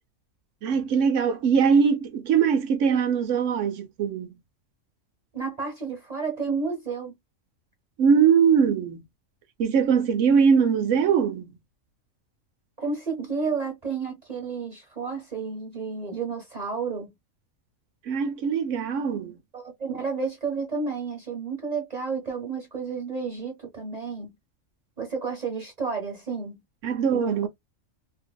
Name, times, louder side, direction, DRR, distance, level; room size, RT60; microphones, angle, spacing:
voice 1, 0.6-4.4 8.0-9.0 9.6-11.6 18.1-19.4 26.8-27.5, right 6 dB, 70° right, 1.0 m, -22 dB
voice 2, 5.3-7.1 12.8-17.1 19.5-24.3 25.0-26.6 27.1-27.5, right 5 dB, 35° right, 0.8 m, -31 dB
2.8 x 2.6 x 2.2 m
omnidirectional pair, 1.4 m